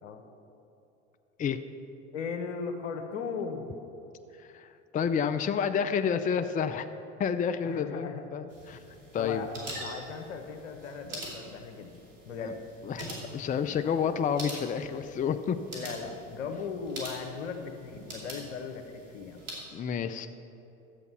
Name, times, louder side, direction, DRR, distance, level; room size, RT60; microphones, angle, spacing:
voice 1, 2.1-3.7 7.6-8.2 8.7-8.8 9.2-11.9 12.3-12.6 15.7-19.4, left 5 dB, 80° left, 6 dB, 1.2 m, -38 dB
voice 2, 4.5-6.9 7.2-8.8 9.1-9.4 12.8-15.6 19.7-20.3, left 7 dB, 20° left, 9 dB, 0.5 m, -29 dB
sound 1, 8.5-19.6, right 1 dB, 85° right, 2.7 m, -44 dB
12.0 x 8.1 x 5.6 m, 2.9 s
hypercardioid pair, 80°, 37 cm